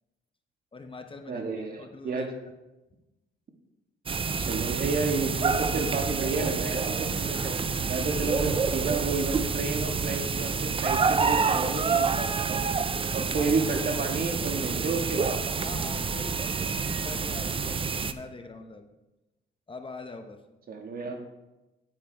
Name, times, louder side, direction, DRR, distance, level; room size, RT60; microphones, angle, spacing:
voice 1, 0.7-2.5 13.3-13.5 15.6-18.9 19.7-20.4, left 3 dB, 25° left, 6 dB, 0.8 m, -43 dB
voice 2, 1.3-2.3 4.4-7.6 7.9-12.6 13.1-15.3 20.7-21.2, right 3 dB, 45° right, 4 dB, 1.6 m, -31 dB
sound 1, 4.1-18.1, right 5 dB, 25° right, 0.5 m, -28 dB
9.5 x 8.8 x 3.4 m, 1.0 s
cardioid pair, 90°, 20 cm